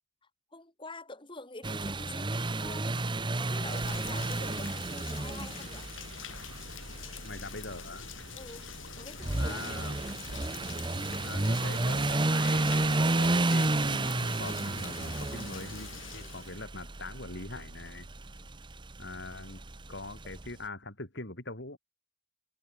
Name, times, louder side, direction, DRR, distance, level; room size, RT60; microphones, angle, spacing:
voice 1, 0.5-5.9 8.3-9.6, left 2 dB, 25° left, 6.5 m, -46 dB
sound 1, 1.6-20.5, right 2 dB, 25° right, 0.9 m, -32 dB
Rain, 3.4-16.6, left 6 dB, 75° left, 4.5 m, -45 dB
voice 2, 7.2-8.1 9.4-10.0 11.2-18.1 19.0-19.6 19.9-21.8, left 2 dB, 60° left, 4.3 m, -42 dB
head